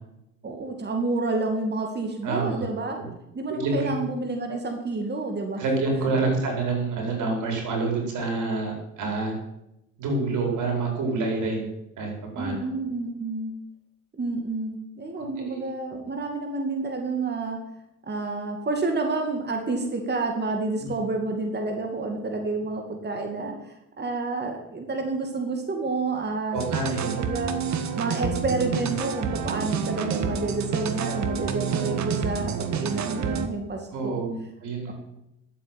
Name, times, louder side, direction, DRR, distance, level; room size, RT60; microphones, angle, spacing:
voice 1, 0.4-3.0 3.3-5.6 6.2-6.4 12.3-13.5 14.2-17.6 18.0-26.6 27.0-27.5 28.0-34.2 34.9-35.0, right 3 dB, 35° right, 3 dB, 2.4 m, -29 dB
voice 2, 2.2-2.6 3.0-3.1 3.5-3.9 5.6-9.3 10.0-11.7 12.0-12.5 15.4-15.7 20.8-20.9 26.5-27.1 33.9-34.9, right 3 dB, 85° right, 1 dB, 5.1 m, -27 dB
sound 1, 26.6-33.5, right 7 dB, 65° right, 1.6 m, -28 dB
12.0 x 8.2 x 9.2 m, 0.86 s
cardioid pair, 90°, 30 cm